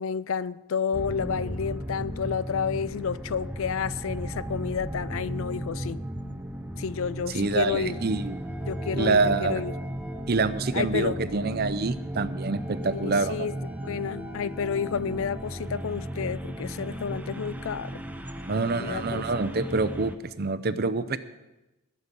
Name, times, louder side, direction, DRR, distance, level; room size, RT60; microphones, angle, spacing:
voice 1, 0.0-6.0 6.8-8.0 8.7-9.8 10.7-11.2 12.8-13.6 13.8-18.0 18.8-19.5, left 6 dB, 65° left, 0.4 m, -30 dB
sound 1, 0.9-20.2, equal, 5° right, 0.6 m, -35 dB
voice 2, 7.3-8.3 8.9-9.6 10.3-13.5 18.5-21.2, right 3 dB, 45° right, 0.6 m, -26 dB
19.5 x 8.2 x 5.4 m
head